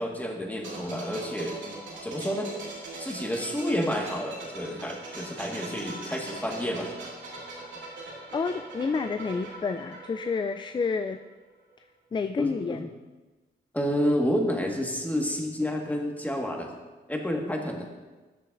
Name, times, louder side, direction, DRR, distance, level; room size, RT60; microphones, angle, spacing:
voice 1, 0.0-2.7 3.0-6.9 12.4-12.8 13.7-16.7 17.1-17.9, equal, 10° left, 1 dB, 1.6 m, -30 dB
sound 1, 0.6-11.3 11.5-11.7, right 2 dB, 85° right, 2.3 m, -41 dB
voice 2, 8.3-11.2 12.1-12.9, left 4 dB, 25° left, 9 dB, 0.3 m, -29 dB
13.0 x 6.7 x 2.6 m, 1.2 s
cardioid pair, 60°, 19 cm